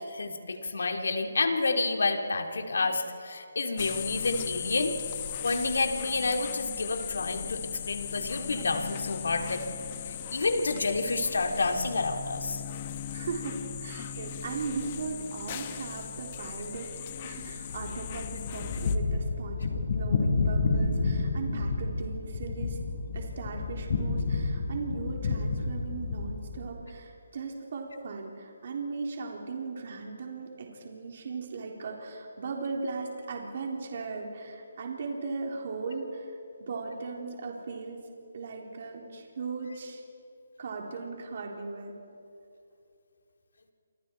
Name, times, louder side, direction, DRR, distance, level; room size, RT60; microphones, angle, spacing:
voice 1, 0.1-4.9 5.4-9.6 10.0-12.6, left 3 dB, 75° left, 4 dB, 2.8 m, -29 dB
sound 1, 3.8-19.0, left 9 dB, 30° left, 1.3 m, -38 dB
voice 2, 13.1-16.9 17.2-22.8 23.1-38.0 38.3-40.0 40.6-42.0, right 4 dB, 50° right, 0 dB, 3.6 m, -38 dB
sound 2, 17.7-26.6, left 3 dB, 50° left, 5.4 m, -30 dB
28.5 x 27.0 x 4.6 m, 2.6 s
hypercardioid pair, 160°, 0 cm